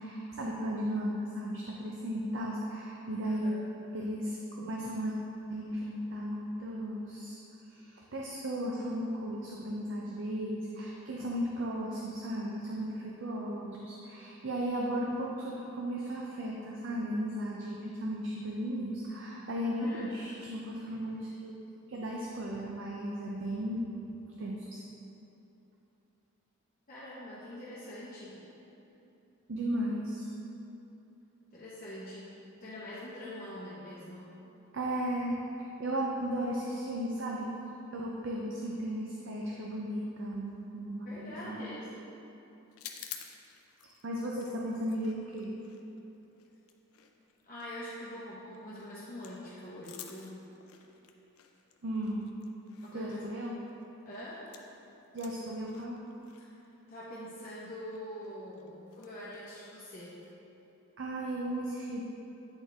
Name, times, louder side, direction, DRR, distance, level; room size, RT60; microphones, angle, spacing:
voice 1, 0.0-3.5 3.9-5.2 5.5-7.4 7.7-21.6 21.9-24.8 29.5-30.3 34.7-37.5 37.9-41.7 44.0-45.5 51.8-52.3 52.9-53.6 55.1-56.0 61.0-62.0, equal, 55° right, -2 dB, 0.5 m, -35 dB
voice 2, 3.2-3.6 19.8-20.2 26.9-28.4 31.5-34.4 41.0-41.9 47.4-50.4 52.8-53.2 54.0-54.4 56.9-60.2, left 1 dB, 40° left, -9 dB, 0.9 m, -44 dB
sound 1, 42.7-54.8 55.0-60.3, left 9 dB, 80° left, 0.5 m, -52 dB
8.7 x 4.3 x 3.4 m, 2.9 s
head